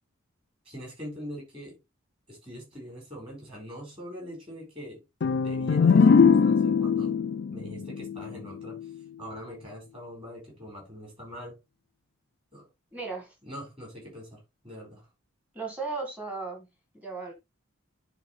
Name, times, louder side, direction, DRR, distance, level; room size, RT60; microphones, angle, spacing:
voice 1, 0.6-1.8 2.3-5.0 5.4-7.2 7.5-8.9 9.2-11.6 12.5-12.7 13.4-15.1, equal, 25° right, 4.5 m, -43 dB
sound 1, 5.2-8.9, left 5 dB, 50° left, 0.4 m, -22 dB
voice 2, 12.9-13.3 15.5-16.7 16.9-17.3, right 4 dB, 5° right, 1.7 m, -35 dB
11.0 x 3.9 x 3.2 m
head